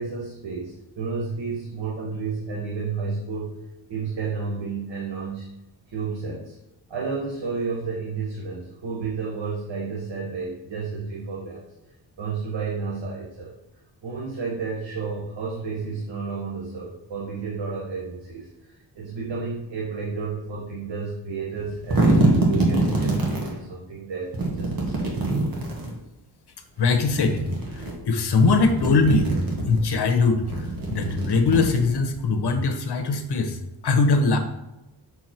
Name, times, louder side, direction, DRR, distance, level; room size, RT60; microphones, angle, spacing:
voice 1, 0.0-3.6 3.9-5.5 5.9-6.5 6.9-11.6 12.2-13.5 14.0-25.1, right 4 dB, 85° right, -4 dB, 1.5 m, -31 dB
sound 1, 21.6-23.5 24.3-25.9 26.9-27.9 28.3-29.8 30.4-32.2, right 2 dB, 55° right, 1.8 m, -24 dB
voice 2, 26.8-27.4 27.7-29.3 29.7-34.4, left 3 dB, 65° left, 7 dB, 1.0 m, -21 dB
6.3 x 4.7 x 4.4 m, 0.98 s
wide cardioid pair, 115°, 42 cm